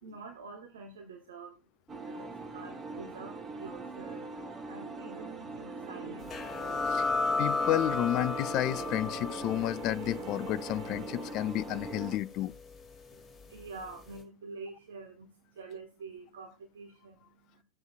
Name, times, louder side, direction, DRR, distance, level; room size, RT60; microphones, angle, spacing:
voice 1, 0.0-1.6 2.1-6.3 13.1-17.6, right 4 dB, 65° right, 1.4 m, -47 dB
sound 1, 1.9-12.2, right 3 dB, 20° right, 1.2 m, -42 dB
sound 2, 6.3-13.5, left 3 dB, 15° left, 2.1 m, -35 dB
sound 3, 6.5-11.5, right 16 dB, 40° right, 0.7 m, -47 dB
voice 2, 7.4-12.5, left 14 dB, 40° left, 0.4 m, -31 dB
14.0 x 7.9 x 2.3 m
figure-of-eight pair, 90°, 0 cm